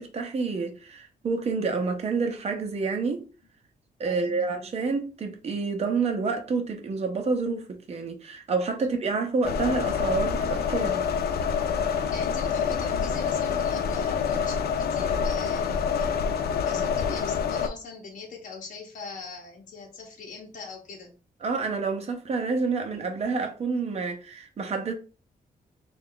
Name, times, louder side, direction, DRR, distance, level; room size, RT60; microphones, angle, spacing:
voice 1, 0.0-3.3 4.0-11.0 21.4-24.9, right 4 dB, 40° right, 0.7 m, -28 dB
voice 2, 4.0-4.5 8.8-9.1 12.1-21.1, left 4 dB, 55° left, 0.9 m, -42 dB
sound 1, 9.4-17.7, left 6 dB, 90° left, 0.4 m, -26 dB
3.2 x 2.4 x 3.7 m
wide cardioid pair, 165°, 16 cm